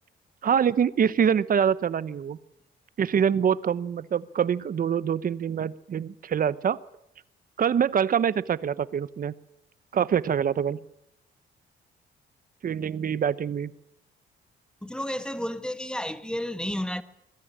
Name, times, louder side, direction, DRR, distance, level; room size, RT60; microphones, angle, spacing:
voice 1, 0.4-2.4 3.0-6.8 7.6-9.3 9.9-10.8 12.6-13.7, right 8 dB, 45° right, 0.8 m, -25 dB
voice 2, 14.8-17.0, left 1 dB, 5° left, 1.3 m, -31 dB
22.0 x 13.0 x 9.9 m
cardioid pair, 90°, 20 cm